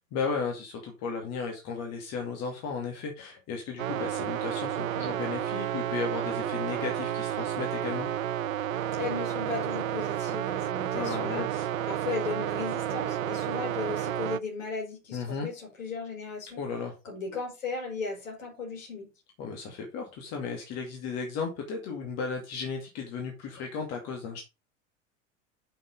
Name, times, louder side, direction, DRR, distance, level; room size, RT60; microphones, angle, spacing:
voice 1, 0.1-8.1 10.9-11.7 15.1-15.5 16.5-17.0 19.4-24.4, left 5 dB, 40° left, 2.3 m, -35 dB
sound 1, 3.8-14.4, right 12 dB, 70° right, 0.5 m, -31 dB
voice 2, 9.0-11.5 11.9-16.6 17.0-19.1, left 4 dB, 65° left, 4.8 m, -36 dB
6.5 x 5.9 x 5.1 m
figure-of-eight pair, 85°, 41 cm